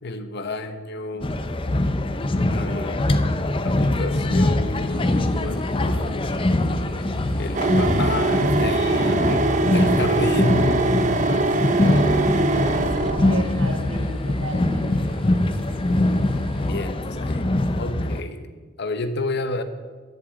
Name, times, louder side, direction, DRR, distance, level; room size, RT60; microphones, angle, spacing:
voice 1, 0.0-1.4 2.3-3.4 3.6-6.3 7.4-10.7 16.6-17.4 17.7-18.5 18.8-19.6, left 2 dB, 55° left, 9 dB, 0.8 m, -31 dB
sound 1, 1.2-18.2, left 1 dB, 25° left, 0.5 m, -23 dB
sound 2, 4.8-16.7, left 1 dB, ahead, 1.9 m, -38 dB
sound 3, 7.5-13.4, right 3 dB, 35° right, 0.5 m, -22 dB
voice 2, 13.3-15.0, right 2 dB, 65° right, 4 dB, 1.6 m, -35 dB
11.0 x 7.5 x 7.7 m, 1.4 s
head